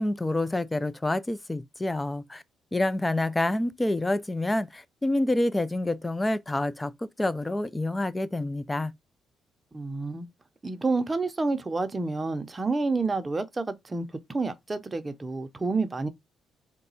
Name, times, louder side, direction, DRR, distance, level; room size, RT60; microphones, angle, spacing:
voice 1, 0.0-2.4 2.7-6.9 7.2-8.9, left 1 dB, 15° left, 0.4 m, -27 dB
voice 2, 9.7-10.3 10.6-16.1, right 3 dB, 25° right, 0.7 m, -29 dB
4.0 x 2.2 x 3.9 m
cardioid pair, 90°, 0 cm